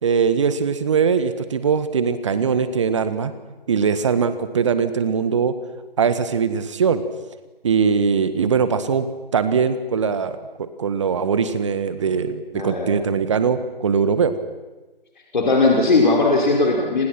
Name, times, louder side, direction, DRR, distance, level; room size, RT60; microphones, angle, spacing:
voice 1, 0.0-3.3 3.7-5.5 6.0-7.0 7.6-9.1 9.3-14.3, right 6 dB, 30° right, 12 dB, 1.6 m, -21 dB
voice 2, 12.5-12.9 15.3-17.1, left 3 dB, 50° left, 0 dB, 5.2 m, -18 dB
30.0 x 26.5 x 6.0 m, 1.2 s
figure-of-eight pair, 150°, 29 cm